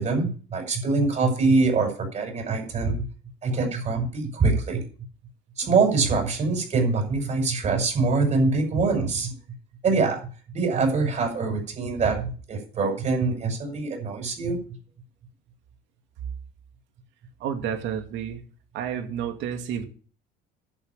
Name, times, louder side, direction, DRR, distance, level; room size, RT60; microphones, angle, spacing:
voice 1, 0.0-3.1 3.4-4.8 5.6-9.3 9.8-10.2 10.5-14.6, right 4 dB, 35° right, 3 dB, 6.2 m, -24 dB
voice 2, 17.4-18.4 18.7-19.8, right 8 dB, 65° right, 5 dB, 2.4 m, -30 dB
11.0 x 7.2 x 7.4 m, 0.40 s
cardioid pair, 125°, 20 cm